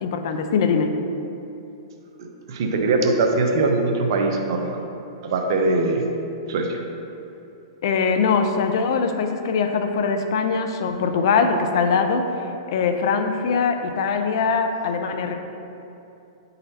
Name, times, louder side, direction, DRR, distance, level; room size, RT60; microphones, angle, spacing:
voice 1, 0.0-0.9 7.8-12.3 12.7-15.3, left 5 dB, 65° left, 6 dB, 0.5 m, -22 dB
voice 2, 2.2-4.8 5.2-6.0 6.5-6.8, right 3 dB, 60° right, 3 dB, 0.8 m, -22 dB
8.8 x 4.0 x 2.8 m, 2.8 s
hypercardioid pair, 130°, 3 cm